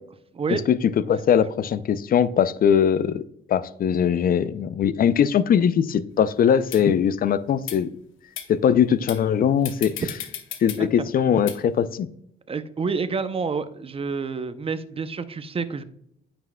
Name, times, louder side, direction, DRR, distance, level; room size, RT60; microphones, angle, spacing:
voice 1, 0.3-0.7 10.8-10.9 12.5-15.8, right 5 dB, 30° right, 0.6 m, -28 dB
voice 2, 1.1-3.2 3.5-7.9 8.5-9.9 10.6-12.1, left 8 dB, 50° left, 0.5 m, -21 dB
sound 1, 6.1-6.2 6.7-6.8 7.6-7.8 8.4-8.5 9.1-9.2 9.7-10.8 11.5-11.6, left 10 dB, 80° left, 0.9 m, -34 dB
9.1 x 6.0 x 2.2 m
cardioid pair, 90°, 20 cm